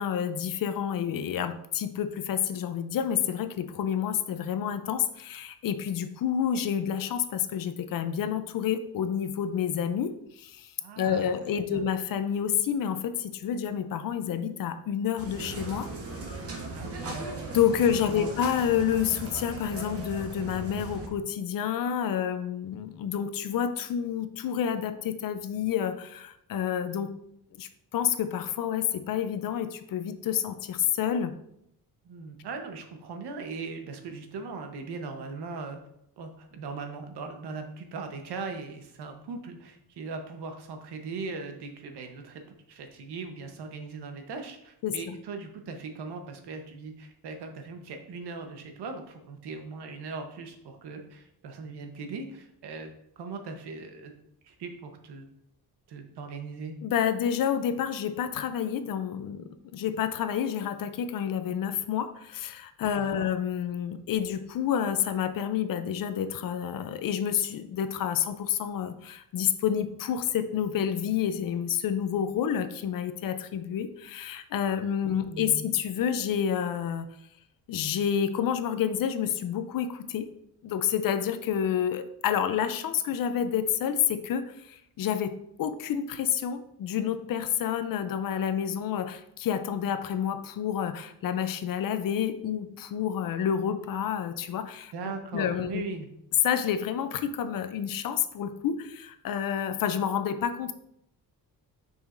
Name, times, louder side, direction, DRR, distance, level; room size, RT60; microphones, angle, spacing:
voice 1, 0.0-15.9 17.5-27.1 27.6-31.4 44.8-45.2 56.8-77.1 77.7-80.3 80.6-94.9 95.3-95.8 96.4-100.7, left 9 dB, 60° left, 11 dB, 0.5 m, -29 dB
voice 2, 10.8-11.3 11.6-11.8 16.7-17.2 18.1-18.3 32.0-35.8 36.2-42.4 42.7-52.9 53.2-54.1 54.4-55.3 55.9-56.8 63.0-63.3 75.0-75.6 94.9-96.1, right 4 dB, 85° right, 5 dB, 1.1 m, -39 dB
sound 1, 15.2-21.1, right 3 dB, 35° right, 1.1 m, -38 dB
7.0 x 5.6 x 2.6 m, 0.76 s
wide cardioid pair, 180°, 39 cm